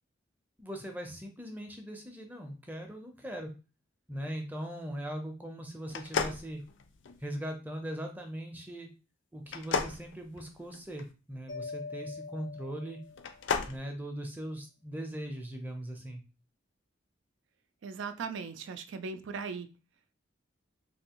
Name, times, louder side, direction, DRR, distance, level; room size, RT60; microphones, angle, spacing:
voice 1, 0.6-3.5 4.1-6.6 7.2-8.9 9.3-13.0 13.7-16.2, equal, 10° right, 3 dB, 0.6 m, -40 dB
sound 1, 5.9-7.3 9.5-11.0 13.1-13.8, left 5 dB, 70° left, 0.4 m, -33 dB
Mallet percussion, 11.5-13.5, left 4 dB, 90° left, 1.4 m, -43 dB
voice 2, 17.8-19.7, right 5 dB, 70° right, 10 dB, 0.4 m, -38 dB
3.3 x 2.6 x 2.9 m, 0.32 s
head